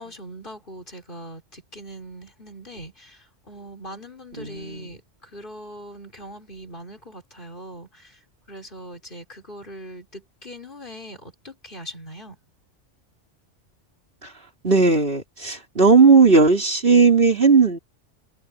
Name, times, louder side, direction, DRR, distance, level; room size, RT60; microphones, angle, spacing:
voice 1, 0.0-8.2 8.5-12.4, equal, 45° left, 5.2 m, -41 dB
voice 2, 4.4-4.8 14.6-17.8, right 4 dB, 50° right, 4.2 m, -16 dB
omnidirectional pair, 1.2 m